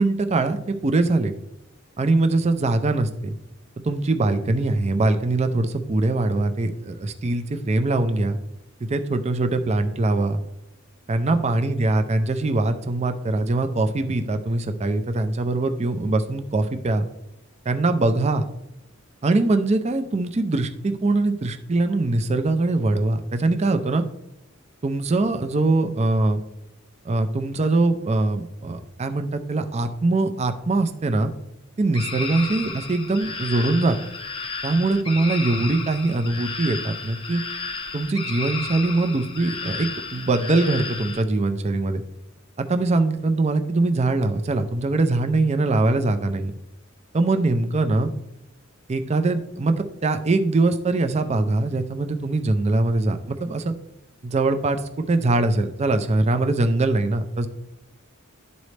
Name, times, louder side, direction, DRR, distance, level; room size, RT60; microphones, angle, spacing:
voice 1, 0.0-1.3 2.0-3.3 3.8-8.4 8.9-10.4 11.1-17.1 17.7-18.4 19.2-24.0 24.8-26.4 27.0-31.3 31.8-34.0 34.6-37.4 37.9-42.0 42.6-46.5 47.1-48.1 48.9-53.7 54.2-57.5, right 2 dB, 30° right, 8 dB, 0.4 m, -22 dB
sound 1, 31.9-41.2, left 4 dB, 25° left, 0.6 m, -33 dB
11.0 x 4.1 x 3.2 m, 0.84 s
head